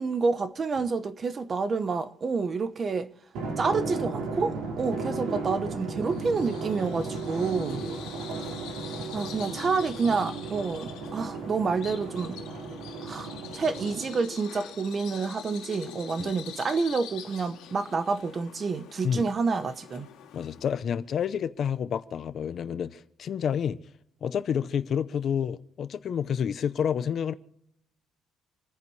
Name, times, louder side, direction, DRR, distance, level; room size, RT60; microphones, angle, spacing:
voice 1, 0.0-3.1 3.6-7.8 9.1-12.4 13.0-20.1, right 4 dB, 25° right, 0.8 m, -28 dB
Drum, 3.3-14.3, right 3 dB, 80° right, 4.7 m, -35 dB
Bird vocalization bird call bird song, 5.9-20.7, left 10 dB, 85° left, 2.2 m, -45 dB
voice 2, 20.3-23.8 24.2-27.3, left 8 dB, 40° left, 0.7 m, -29 dB
28.0 x 10.0 x 3.2 m
cardioid pair, 175°, 0 cm